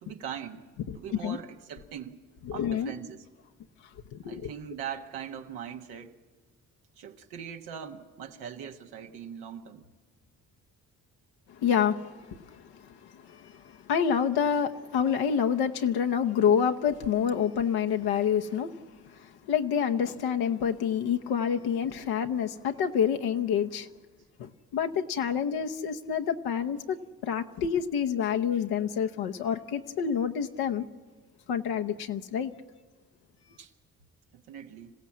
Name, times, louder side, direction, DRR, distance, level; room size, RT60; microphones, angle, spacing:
voice 1, 0.0-0.7 0.9-2.2 2.5-3.2 4.2-6.1 7.0-9.9 33.6-33.7 34.5-34.9, right 8 dB, 90° right, 1.4 m, -41 dB
voice 2, 2.5-2.9 4.1-4.5 11.5-18.7 19.1-23.9 24.4-27.0 27.2-30.9 31.5-32.5, left 8 dB, 80° left, 0.9 m, -28 dB
26.5 x 15.5 x 7.4 m
supercardioid pair, 60°, 38 cm